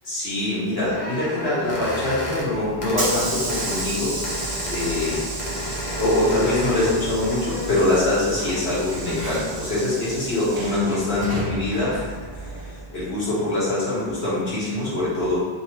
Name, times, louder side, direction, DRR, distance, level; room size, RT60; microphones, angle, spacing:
voice 1, 0.0-4.2 4.7-5.2 6.0-15.5, left 2 dB, 75° left, -9 dB, 1.7 m, -24 dB
sound 1, 0.9-2.5 2.8-3.1 3.5-3.9 4.2-8.1 8.9-9.4, left 1 dB, 45° left, 1.0 m, -32 dB
Hiss / Sliding door, 2.3-13.1, right 2 dB, 25° right, 0.8 m, -32 dB
3.2 x 3.1 x 3.9 m, 1.5 s
omnidirectional pair, 1.0 m